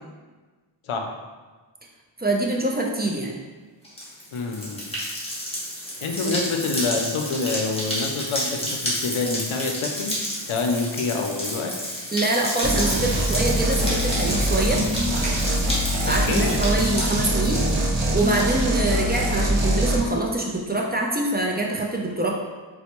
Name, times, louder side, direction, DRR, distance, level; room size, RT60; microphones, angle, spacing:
voice 1, 2.2-3.4 6.2-6.4 12.1-14.8 16.1-17.6 18.1-22.3, right 2 dB, 20° right, -1 dB, 0.5 m, -24 dB
sound 1, 3.8-18.1, equal, 10° left, 1.1 m, -30 dB
voice 2, 4.3-4.9 6.0-10.2 10.5-11.8 16.0-16.6, left 4 dB, 85° left, 3 dB, 0.5 m, -27 dB
sound 2, 12.6-20.0, equal, 70° right, 0.7 m, -23 dB
4.2 x 2.2 x 2.9 m, 1.3 s
wide cardioid pair, 55°, 47 cm